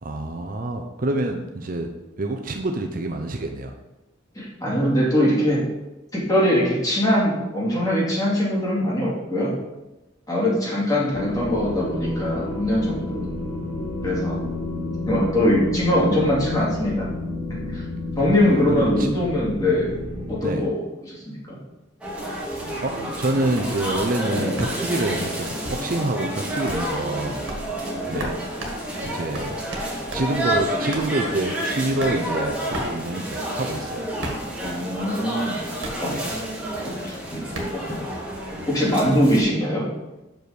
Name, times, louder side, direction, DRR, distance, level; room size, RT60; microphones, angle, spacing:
voice 1, 0.0-1.9 2.2-3.7 18.3-19.1 20.4-20.7 22.8-27.4 28.1-28.3 29.0-29.6 30.1-34.1 36.1-36.3, right 2 dB, 45° right, 5 dB, 0.6 m, -27 dB
voice 2, 4.4-5.6 6.1-9.5 10.3-13.3 14.0-14.4 15.1-17.1 17.7-17.8 18.2-19.9 20.3-21.6 26.6-27.0 27.7-28.4 34.6-35.6 36.0-36.2 36.8-37.4 37.7-38.0 38.7-39.9, left 1 dB, 20° left, -6 dB, 2.3 m, -22 dB
sound 1, 11.1-20.4, left 2 dB, 75° left, 1.2 m, -30 dB
sound 2, 22.0-39.4, right 1 dB, 5° right, 1.9 m, -29 dB
sound 3, 23.6-24.1 24.6-24.9 25.6-25.8 26.2-26.3 26.7-26.9 27.5-27.7 28.2-28.3 28.6-30.3 30.5-30.6 30.9-31.1 32.0-32.1 32.7-33.0 33.5-33.6 34.2-34.5 35.6-36.1 37.5-37.8, right 1 dB, 80° right, 1.6 m, -33 dB
6.2 x 5.3 x 5.1 m, 1.0 s
head